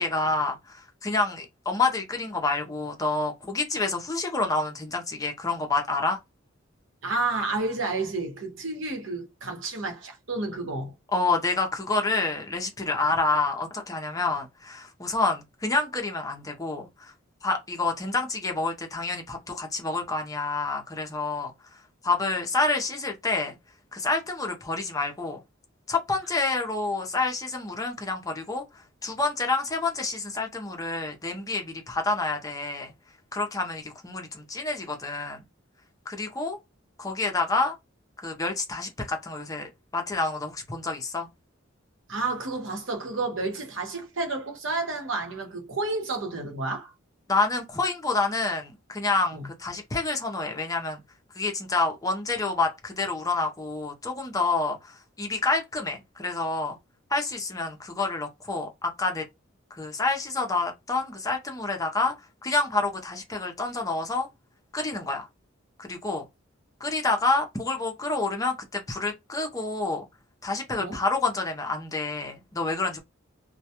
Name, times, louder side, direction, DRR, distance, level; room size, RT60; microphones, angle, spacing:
voice 1, 0.0-6.2 11.1-17.1 17.4-23.6 23.9-25.4 25.9-32.9 33.3-35.4 36.1-36.6 37.0-37.7 38.2-41.3 47.3-51.0 51.4-56.8 57.1-59.2 59.7-62.1 62.4-64.3 64.7-65.3 65.8-66.3 66.8-70.1 70.4-73.0, left 3 dB, 20° left, 0.5 m, -28 dB
voice 2, 7.0-10.9 42.1-46.9 49.3-49.5 70.8-71.0, right 3 dB, 70° right, 0.9 m, -30 dB
2.2 x 2.1 x 2.8 m
head